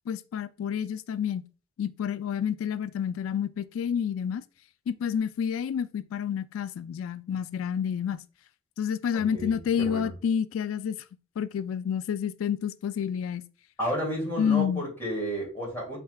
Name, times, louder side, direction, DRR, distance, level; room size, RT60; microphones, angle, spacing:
voice 1, 0.1-1.4 1.8-4.4 4.9-8.2 8.8-11.0 11.4-13.5 14.4-14.8, left 8 dB, 85° left, 0.3 m, -29 dB
voice 2, 9.1-10.1 13.8-16.0, equal, 10° left, 2.4 m, -32 dB
5.5 x 3.5 x 2.3 m
head